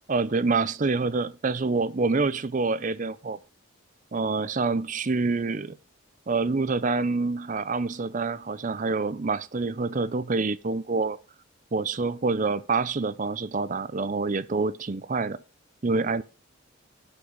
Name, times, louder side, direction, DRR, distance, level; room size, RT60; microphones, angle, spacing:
voice 1, 0.1-3.4 4.1-5.8 6.3-11.2 11.7-15.4 15.8-16.2, right 3 dB, 40° right, 0.5 m, -26 dB
12.0 x 5.6 x 5.2 m
head